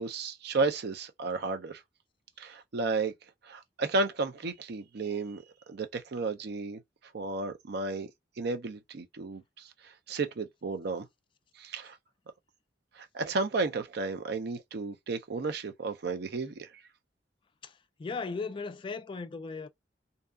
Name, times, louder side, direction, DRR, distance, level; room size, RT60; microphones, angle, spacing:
voice 1, 0.0-1.8 2.4-3.1 3.4-6.8 7.1-8.1 8.4-11.0 11.6-12.0 13.0-16.7, right 3 dB, 60° right, 0.5 m, -33 dB
voice 2, 17.6-19.7, left 4 dB, 30° left, 0.3 m, -37 dB
2.6 x 2.3 x 2.3 m
head